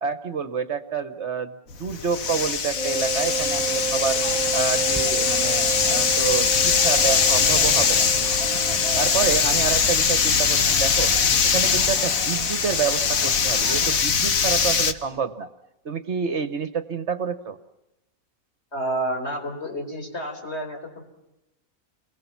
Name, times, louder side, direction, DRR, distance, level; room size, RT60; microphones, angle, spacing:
voice 1, 0.0-1.5 1.8-4.2 4.5-8.1 9.0-11.1 11.5-15.5 15.8-17.6, right 6 dB, 55° right, 11 dB, 1.2 m, -28 dB
sound 1, 1.7-14.9, left 6 dB, 75° left, 1.6 m, -22 dB
Wind instrument woodwind instrument, 2.7-9.4, right 6 dB, 30° left, 1.5 m, -31 dB
sound 2, 3.5-14.0, right 2 dB, 20° right, 1.1 m, -38 dB
voice 2, 18.7-21.0, right 1 dB, 50° left, 2 dB, 4.7 m, -30 dB
30.0 x 21.5 x 5.8 m, 0.93 s
omnidirectional pair, 1.5 m